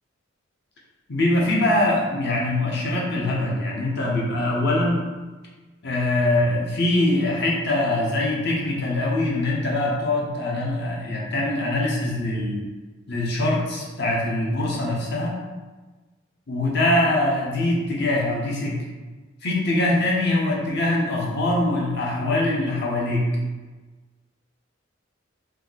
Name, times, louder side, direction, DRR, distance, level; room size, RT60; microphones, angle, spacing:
voice 1, 1.1-5.0 5.8-12.6 13.1-15.4 16.5-18.8 19.4-23.3, left 1 dB, 60° left, -3 dB, 0.7 m, -23 dB
2.8 x 2.3 x 3.7 m, 1.3 s
head